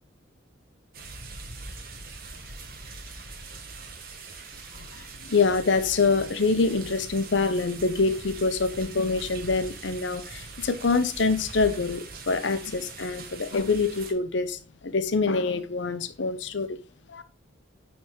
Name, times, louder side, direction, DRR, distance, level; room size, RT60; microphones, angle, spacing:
sound 1, 0.9-14.1, right 3 dB, 50° right, 1.0 m, -42 dB
voice 1, 5.2-16.8 17.1-17.2, left 4 dB, 65° left, 0.7 m, -25 dB
9.6 x 3.5 x 3.1 m
head